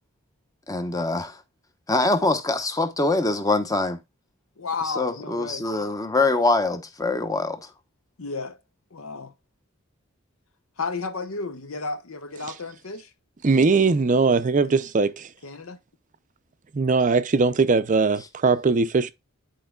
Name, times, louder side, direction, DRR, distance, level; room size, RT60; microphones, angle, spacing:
voice 1, 0.7-1.4 1.9-4.0 4.8-7.7, left 2 dB, 15° left, 0.8 m, -24 dB
voice 2, 4.6-5.7 8.2-8.6 8.9-9.3 10.8-13.1 14.2-14.4 14.7-14.9 15.4-15.8, left 4 dB, 75° left, 0.9 m, -33 dB
voice 3, 13.4-15.3 16.7-19.1, right 4 dB, 35° right, 0.5 m, -20 dB
10.5 x 4.6 x 2.3 m
head